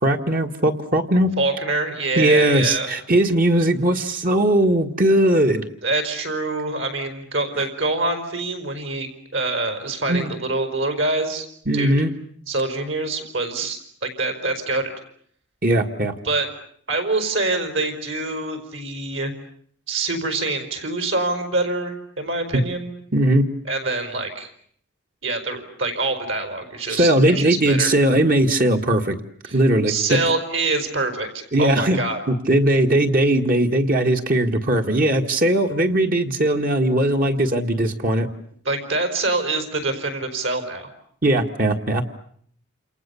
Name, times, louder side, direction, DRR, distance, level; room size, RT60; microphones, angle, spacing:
voice 1, 0.0-1.3 2.2-5.6 10.1-10.3 11.7-12.1 15.6-16.1 22.5-22.6 23.1-23.5 26.9-29.2 29.5-30.2 31.5-32.0 32.3-38.3 41.2-42.0, right 1 dB, 40° right, 4 dB, 1.8 m, -19 dB
voice 2, 1.4-2.9 4.1-4.2 5.8-11.5 11.7-11.9 12.5-14.9 16.2-16.5 16.9-19.3 19.9-22.9 23.6-24.5 25.2-27.9 29.4-29.6 29.9-32.2 38.6-40.9, right 2 dB, 60° right, 8 dB, 5.0 m, -25 dB
29.0 x 28.5 x 7.0 m, 0.63 s
head